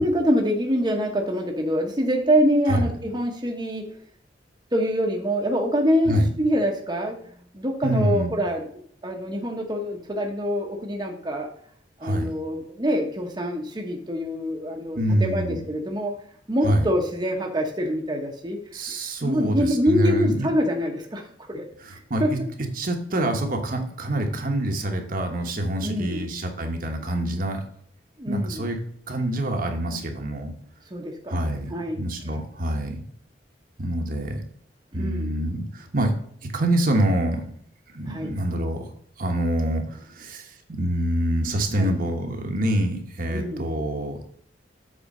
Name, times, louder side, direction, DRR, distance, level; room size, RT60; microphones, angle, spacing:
voice 1, 0.0-3.9 4.7-8.7 9.0-11.5 12.0-16.1 16.5-18.8 19.2-21.7 21.9-22.3 25.8-26.3 28.2-28.7 30.9-31.4 31.7-32.0 32.2-32.4 34.9-35.4 38.1-38.3 41.8-41.9 43.3-43.6, equal, 25° right, 0 dB, 1.0 m, -25 dB
voice 2, 7.8-8.3 12.0-12.3 15.0-15.6 16.6-16.9 18.7-20.5 21.8-22.4 22.7-27.6 28.3-28.8 29.1-30.5 31.3-33.0 33.8-34.4 34.9-36.1 36.5-37.4 37.9-38.8 39.2-44.2, right 1 dB, 50° right, 3 dB, 1.1 m, -26 dB
7.6 x 4.3 x 5.4 m, 0.62 s
head